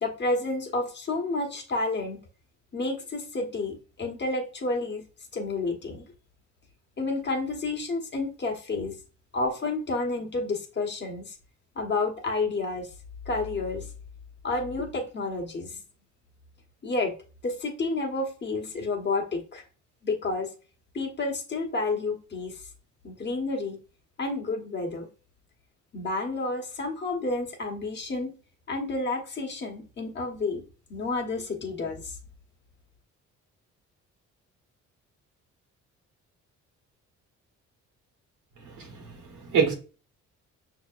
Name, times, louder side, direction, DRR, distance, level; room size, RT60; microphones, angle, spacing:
voice 1, 0.0-2.2 2.7-5.0 5.3-6.0 7.0-8.9 9.3-11.3 11.8-12.9 13.3-13.8 14.4-15.8 16.8-17.1 17.4-19.6 20.0-20.5 20.9-22.5 23.0-23.8 24.2-25.1 25.9-28.3 28.7-30.6 30.9-32.2, left 3 dB, 35° left, 1.2 m, -30 dB
voice 2, 38.6-39.7, right 6 dB, 85° right, 1.2 m, -27 dB
6.0 x 2.8 x 2.5 m
cardioid pair, 90°, 30 cm